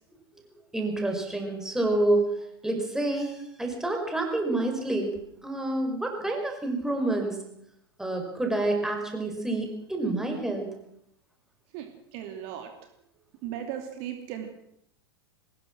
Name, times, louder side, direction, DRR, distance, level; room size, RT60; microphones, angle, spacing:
voice 1, 0.7-2.3 2.6-5.1 5.4-7.4 8.0-10.7, right 2 dB, 5° right, 3 dB, 5.5 m, -28 dB
voice 2, 11.7-12.7 13.4-14.5, right 10 dB, 45° right, 5 dB, 2.7 m, -37 dB
22.5 x 20.0 x 6.3 m, 0.75 s
figure-of-eight pair, 90°, 13 cm